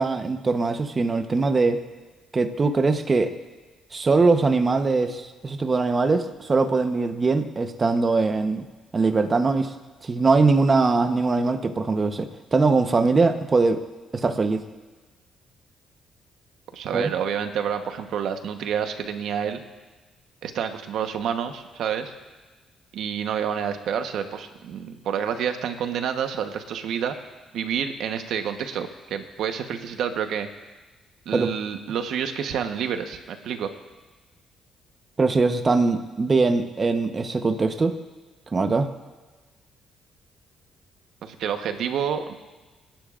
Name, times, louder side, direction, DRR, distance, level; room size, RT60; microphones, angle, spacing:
voice 1, 0.0-1.8 2.3-3.3 3.9-8.7 8.9-9.7 10.0-13.8 14.1-14.6 16.9-17.1 31.3-31.5 35.2-38.0 38.5-38.9, right 3 dB, 30° right, 7 dB, 1.0 m, -21 dB
voice 2, 16.7-19.6 20.4-22.1 22.9-27.1 27.5-30.5 31.2-33.7 41.2-42.3, right 8 dB, 80° right, 7 dB, 1.1 m, -28 dB
27.5 x 10.5 x 2.5 m, 1.2 s
cardioid pair, 90°, 0 cm